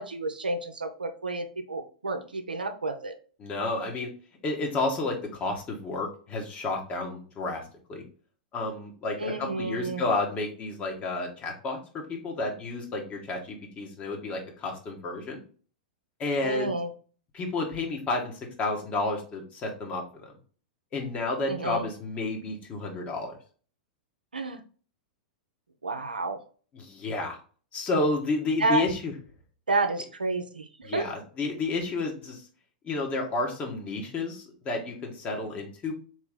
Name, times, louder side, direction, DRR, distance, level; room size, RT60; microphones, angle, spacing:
voice 1, 0.0-3.1 9.2-10.1 16.4-16.9 21.4-21.9 24.3-24.6 25.8-26.4 28.6-28.8 29.7-31.1, right 3 dB, 90° right, 7 dB, 0.6 m, -30 dB
voice 2, 3.4-4.1 4.4-7.6 7.9-8.0 8.5-15.4 16.2-16.7 17.3-18.3 18.6-20.3 20.9-23.4 26.7-27.4 27.7-29.1 30.8-32.4 32.8-35.9, left 2 dB, 30° left, 1 dB, 1.4 m, -31 dB
4.0 x 3.1 x 3.7 m, 0.41 s
hypercardioid pair, 105°, 5 cm